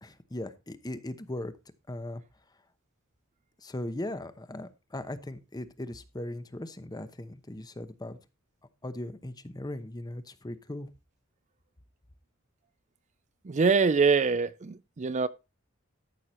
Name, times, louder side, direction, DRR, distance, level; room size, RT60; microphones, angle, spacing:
voice 1, 0.0-1.5 1.9-2.2 3.6-8.2 8.8-10.9, left 1 dB, 20° left, 0.9 m, -38 dB
voice 2, 13.4-15.3, right 5 dB, 35° right, 0.4 m, -24 dB
13.5 x 6.6 x 4.3 m
head